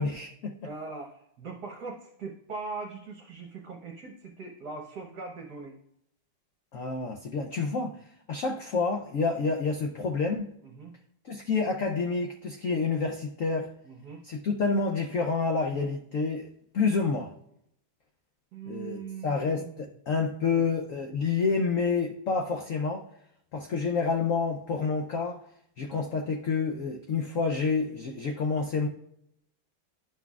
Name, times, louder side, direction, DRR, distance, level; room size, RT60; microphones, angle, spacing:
voice 1, 0.0-0.6 6.7-8.0 8.3-10.5 11.2-13.7 14.2-17.3 18.7-23.1 23.5-25.4 25.8-28.9, left 4 dB, 80° left, 3 dB, 0.7 m, -28 dB
voice 2, 0.6-5.8 7.8-7.9 9.4-9.5 10.6-10.9 13.8-14.2 18.5-19.9 20.5-20.7 23.5-23.6, right 4 dB, 60° right, -1 dB, 1.4 m, -41 dB
11.5 x 5.9 x 2.4 m, 0.75 s
omnidirectional pair, 2.2 m